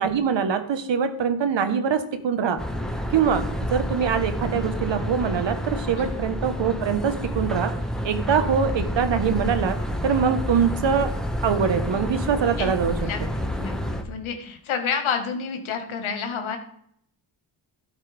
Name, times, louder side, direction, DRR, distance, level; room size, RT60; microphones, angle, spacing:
voice 1, 0.0-2.6 3.1-7.7 8.0-9.8 10.0-11.1 11.4-13.0, right 7 dB, 65° right, 9 dB, 1.4 m, -23 dB
sound 1, 2.6-14.0, equal, ahead, 1.6 m, -29 dB
voice 2, 13.6-16.6, left 6 dB, 75° left, 5 dB, 1.8 m, -29 dB
12.5 x 8.1 x 3.5 m, 0.70 s
supercardioid pair, 60°, 48 cm